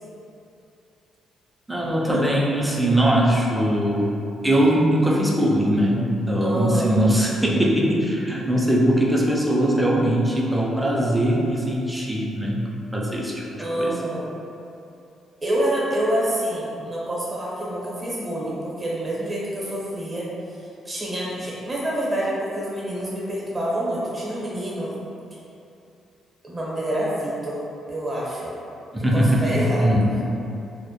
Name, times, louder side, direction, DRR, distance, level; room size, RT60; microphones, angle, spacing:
voice 1, 1.7-4.2 4.4-13.4 13.8-13.9 28.9-30.1, equal, 5° right, -3 dB, 0.4 m, -21 dB
voice 2, 6.4-7.0 13.6-14.3 15.4-24.9 26.4-27.6 27.9-28.5 29.1-29.9, right 1 dB, 25° right, -6 dB, 0.7 m, -27 dB
2.1 x 2.1 x 2.8 m, 2.7 s
cardioid pair, 90°, 0 cm